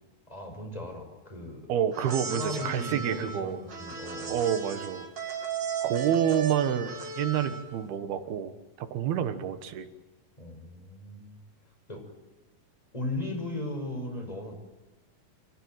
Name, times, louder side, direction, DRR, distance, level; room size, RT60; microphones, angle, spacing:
voice 1, 0.3-1.7 2.3-4.4 10.4-11.3 11.9-12.0 12.9-14.6, left 1 dB, 10° left, 4 dB, 5.6 m, -37 dB
voice 2, 1.7-3.6 4.3-5.1 5.8-8.5 8.8-9.9, right 9 dB, 75° right, 9 dB, 3.2 m, -28 dB
sound 1, 1.9-7.8, right 5 dB, 35° right, 2.1 m, -35 dB
29.0 x 16.0 x 9.1 m, 1.2 s
omnidirectional pair, 4.6 m